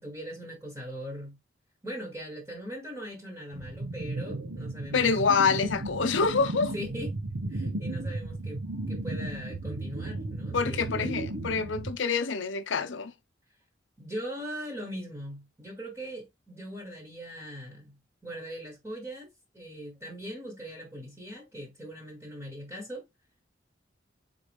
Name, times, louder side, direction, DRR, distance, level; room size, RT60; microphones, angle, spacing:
voice 1, 0.0-1.4 1.8-5.2 6.7-7.1 7.5-11.2 14.0-23.0, equal, 15° right, 1.1 m, -40 dB
sound 1, 3.5-12.0, right 2 dB, 80° right, 1.1 m, -35 dB
voice 2, 4.9-6.7 10.5-13.1, left 5 dB, 80° left, 0.6 m, -26 dB
4.0 x 3.9 x 3.4 m
head